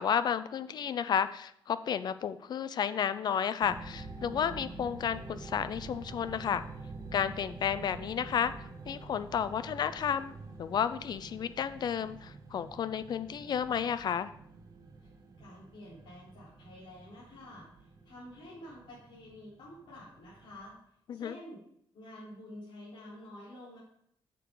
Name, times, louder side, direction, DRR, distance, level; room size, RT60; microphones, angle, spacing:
voice 1, 0.0-6.6 7.1-8.5 8.9-14.3 21.1-21.4, left 8 dB, 55° left, 14 dB, 0.4 m, -32 dB
sound 1, 3.6-20.7, right 3 dB, 45° right, 1.5 m, -47 dB
voice 2, 15.4-20.7 21.1-21.6 21.9-23.8, left 1 dB, 80° left, -9 dB, 3.8 m, -49 dB
9.4 x 6.9 x 3.9 m, 0.69 s
wide cardioid pair, 170°, 9 cm